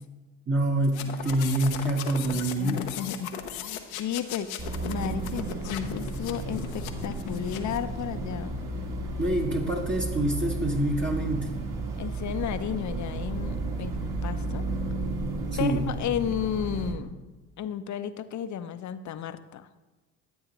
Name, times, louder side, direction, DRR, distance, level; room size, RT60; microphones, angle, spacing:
voice 1, 0.5-2.8 9.2-11.5 15.6-15.9, right 1 dB, 30° right, -1 dB, 1.3 m, -26 dB
sound 1, 0.8-7.8, left 9 dB, 85° left, 0.9 m, -38 dB
voice 2, 2.3-3.3 4.0-8.6 12.0-14.6 15.6-17.2 17.6-19.7, left 9 dB, 45° left, 11 dB, 0.7 m, -33 dB
sound 2, 4.6-16.9, right 2 dB, 50° right, 2.0 m, -33 dB
12.5 x 8.6 x 3.0 m, 1.2 s
hypercardioid pair, 55°, 40 cm